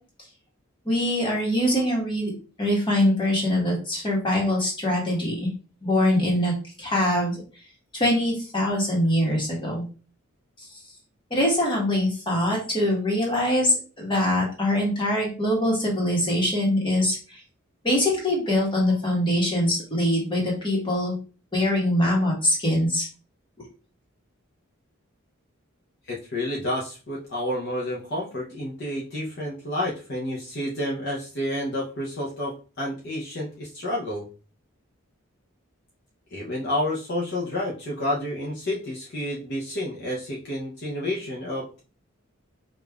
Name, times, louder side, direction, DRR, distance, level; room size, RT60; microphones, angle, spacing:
voice 1, 0.8-2.3 2.6-5.5 5.8-7.4 7.9-9.8 11.3-17.4 17.8-21.2 21.5-23.1, left 1 dB, 25° left, -2 dB, 1.2 m, -23 dB
voice 2, 26.1-34.3 36.3-41.8, left 1 dB, 50° left, -4 dB, 0.7 m, -30 dB
5.0 x 2.5 x 2.3 m, 0.36 s
head